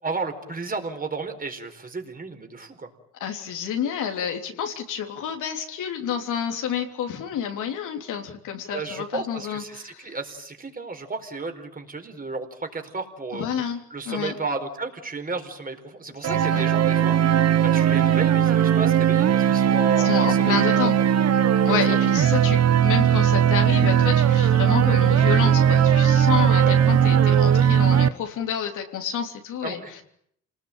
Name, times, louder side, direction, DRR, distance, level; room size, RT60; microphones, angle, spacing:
voice 1, 0.0-2.9 8.7-13.4 13.9-17.2 17.6-20.9 21.4-21.5 21.9-22.1 26.5-26.9 29.6-29.9, right 3 dB, 30° right, 5 dB, 4.5 m, -33 dB
voice 2, 3.2-10.1 13.3-14.3 16.2-16.6 20.0-21.0 21.6-30.0, left 8 dB, 85° left, 3 dB, 3.4 m, -29 dB
sound 1, 16.2-28.1, right 9 dB, 55° right, 1.2 m, -18 dB
28.0 x 19.5 x 8.8 m, 0.69 s
cardioid pair, 90°, 30 cm